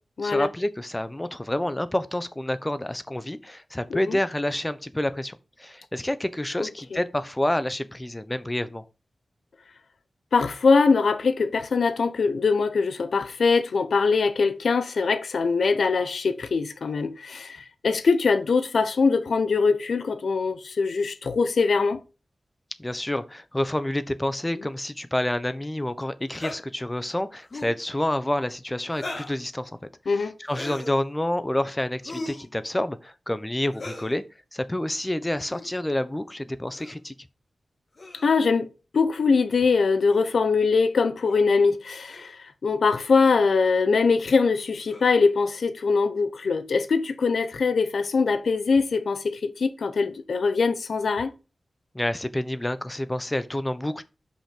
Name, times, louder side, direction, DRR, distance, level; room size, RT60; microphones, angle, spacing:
voice 1, 0.2-8.8 22.8-29.8 30.1-34.2 34.5-37.1 51.9-54.0, left 1 dB, 20° left, 1.0 m, -28 dB
voice 2, 6.6-7.0 10.3-22.0 30.1-30.3 38.2-38.7 38.9-51.3, left 4 dB, 85° left, 0.9 m, -22 dB
sound 1, 26.3-26.6 27.4-27.8 28.9-29.4 30.5-31.0 32.1-32.5 33.7-34.1 35.4-35.7 36.8-37.0 38.0-38.4 40.1-40.2 41.3-41.4 42.1-42.3 43.1-43.3 44.9-45.2, left 2 dB, 60° left, 2.1 m, -38 dB
5.7 x 5.5 x 6.7 m
cardioid pair, 45°, 0 cm